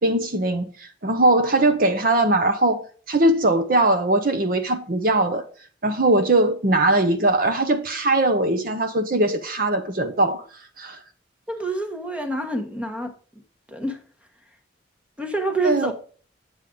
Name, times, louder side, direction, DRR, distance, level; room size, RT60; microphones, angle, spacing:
voice 1, 0.0-5.4 5.8-10.4 10.8-11.0 15.6-15.9, right 2 dB, 50° right, 0.8 m, -20 dB
voice 2, 11.5-13.1 13.7-14.0 15.2-15.9, right 2 dB, 5° right, 1.1 m, -27 dB
8.9 x 7.5 x 3.8 m
head